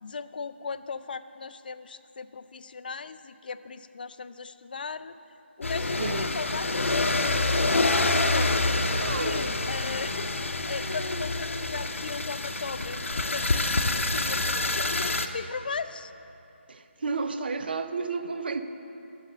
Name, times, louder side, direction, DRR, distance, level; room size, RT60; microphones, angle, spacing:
voice 1, 0.0-5.2 5.6-10.3 10.6-16.1, left 5 dB, 45° left, 12 dB, 0.4 m, -38 dB
sound 1, 5.6-15.3, left 2 dB, 85° left, 0.8 m, -27 dB
voice 2, 8.9-9.5 16.7-18.6, right 4 dB, 50° right, 9 dB, 0.6 m, -31 dB
11.5 x 7.4 x 6.6 m, 3.0 s
figure-of-eight pair, 165°, 7 cm